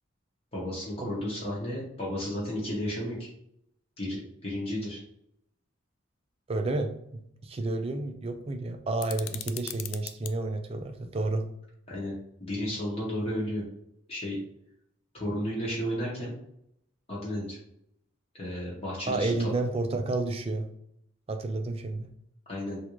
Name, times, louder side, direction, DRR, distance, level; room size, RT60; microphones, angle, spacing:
voice 1, 0.5-3.2 4.0-5.0 11.9-12.1 12.4-13.6 14.1-14.4 15.1-16.3 17.1-17.6 18.3-19.5 22.5-22.8, left 1 dB, 30° left, -6 dB, 0.8 m, -33 dB
voice 2, 6.5-11.5 19.1-20.7 21.3-22.1, right 2 dB, 30° right, 6 dB, 0.3 m, -31 dB
sound 1, 9.0-10.3, left 13 dB, 80° left, 0.3 m, -39 dB
3.5 x 2.4 x 3.0 m, 0.75 s
head